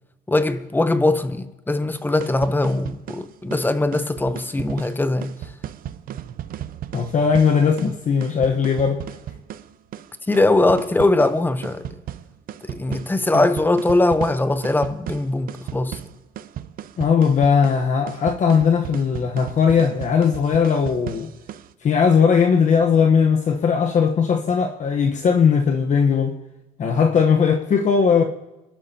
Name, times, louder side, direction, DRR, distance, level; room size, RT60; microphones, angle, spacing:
voice 1, 0.3-5.3 10.3-12.0 12.6-16.0, left 2 dB, 10° left, 0.8 m, -21 dB
sound 1, 2.0-21.7, right 11 dB, 60° right, 0.7 m, -36 dB
voice 2, 6.9-9.0 13.3-13.5 17.0-21.3 21.8-26.3 26.8-28.2, left 6 dB, 45° left, 1.1 m, -18 dB
26.0 x 12.0 x 2.9 m
cardioid pair, 110°, 17 cm